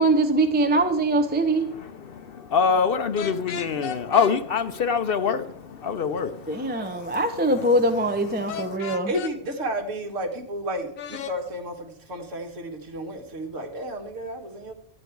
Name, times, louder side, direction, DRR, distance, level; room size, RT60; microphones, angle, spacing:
voice 1, 0.0-1.7 6.5-9.1, right 2 dB, 10° right, 0.5 m, -22 dB
voice 2, 1.6-7.2 7.5-7.6 8.4-9.0, left 6 dB, 55° left, 0.7 m, -26 dB
sound 1, 3.2-4.3 8.5-9.3 11.0-11.4, left 7 dB, 75° left, 1.3 m, -34 dB
voice 3, 9.1-14.7, right 1 dB, 65° right, 1.8 m, -32 dB
11.5 x 8.9 x 4.5 m
omnidirectional pair, 1.4 m